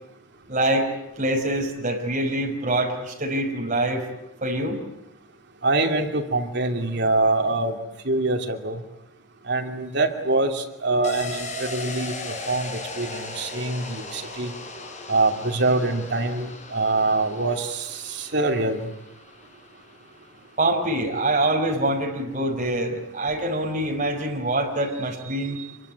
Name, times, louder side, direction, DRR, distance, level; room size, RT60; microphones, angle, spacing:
voice 1, 0.5-0.9 1.2-4.0 4.4-4.8 20.6-25.7, right 1 dB, 35° right, 1 dB, 5.8 m, -25 dB
voice 2, 5.6-7.8 8.0-8.8 9.4-14.5 15.1-18.9, right 2 dB, 55° right, 4 dB, 2.9 m, -24 dB
sound 1, 11.0-20.4 20.7-20.8, left 2 dB, 35° left, 4.5 m, -37 dB
27.0 x 23.5 x 9.5 m, 0.84 s
head